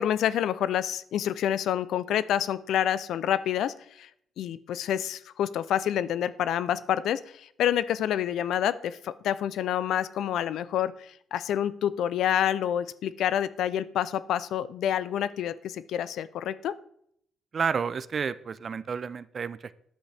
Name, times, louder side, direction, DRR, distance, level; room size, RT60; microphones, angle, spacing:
voice 1, 0.0-4.1 4.4-16.7, left 10 dB, 75° left, 16 dB, 0.4 m, -28 dB
voice 2, 17.5-19.7, right 6 dB, 45° right, 15 dB, 0.4 m, -30 dB
10.0 x 8.0 x 3.4 m, 0.68 s
cardioid pair, 90°, 0 cm